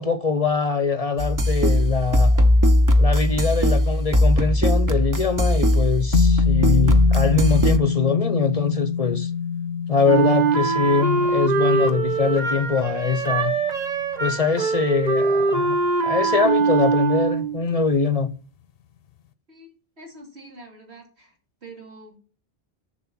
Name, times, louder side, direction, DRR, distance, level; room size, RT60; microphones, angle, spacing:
voice 1, 0.0-2.3 3.0-9.3 9.9-13.5 14.2-15.8 16.0-18.3, left 5 dB, 40° left, 0.7 m, -23 dB
sound 1, 1.2-7.8, left 1 dB, 25° right, 0.5 m, -18 dB
sound 2, 6.1-14.6, left 7 dB, 70° left, 0.8 m, -26 dB
Wind instrument woodwind instrument, 10.1-17.6, right 4 dB, 45° right, 0.8 m, -22 dB
voice 2, 20.0-22.2, right 2 dB, 85° right, 3.0 m, -45 dB
7.1 x 6.3 x 6.1 m
omnidirectional pair, 1.1 m